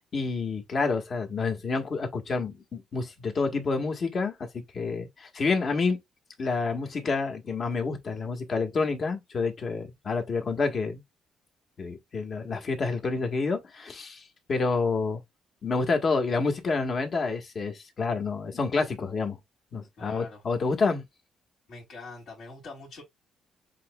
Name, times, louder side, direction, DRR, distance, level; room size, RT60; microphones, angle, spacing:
voice 1, 0.1-6.0 6.4-11.0 11.8-15.2 15.6-19.4 19.7-21.0, left 4 dB, 50° left, 1.5 m, -28 dB
voice 2, 20.0-20.4 21.7-23.0, left 3 dB, 65° left, 2.6 m, -44 dB
7.4 x 3.0 x 2.3 m
cardioid pair, 90°, 0 cm